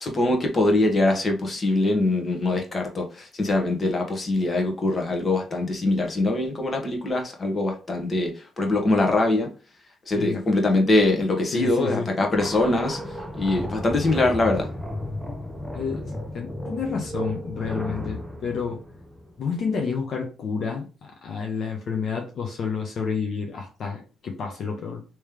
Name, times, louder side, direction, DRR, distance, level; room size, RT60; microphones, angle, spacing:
voice 1, 0.0-9.5 10.1-13.0 13.4-14.7, left 2 dB, 35° left, 1.3 m, -23 dB
voice 2, 11.5-12.1 15.7-18.8 19.4-20.9 21.2-25.0, left 5 dB, 60° left, 0.9 m, -29 dB
sound 1, 12.3-19.8, equal, ahead, 0.7 m, -34 dB
3.2 x 3.1 x 3.5 m
cardioid pair, 90°, 0 cm